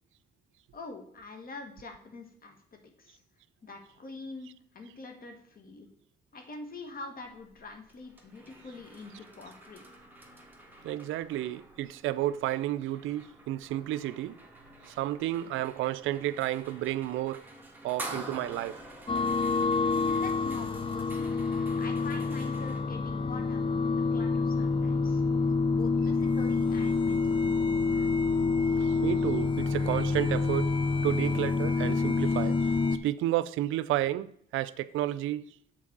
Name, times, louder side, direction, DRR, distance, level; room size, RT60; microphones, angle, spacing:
voice 1, 0.7-3.2 3.6-5.9 6.3-9.8 19.8-21.5 21.8-25.2 25.7-27.4, left 3 dB, 45° left, 1.4 m, -45 dB
sound 1, 7.2-22.8, right 2 dB, 10° right, 1.4 m, -48 dB
voice 2, 10.8-14.4 14.9-17.4 17.8-18.8 28.8-30.8 31.0-32.7 33.0-35.4, right 14 dB, 85° right, 0.4 m, -31 dB
sound 2, 19.1-33.0, left 4 dB, 25° left, 0.5 m, -27 dB
6.2 x 4.0 x 5.9 m
cardioid pair, 90°, 20 cm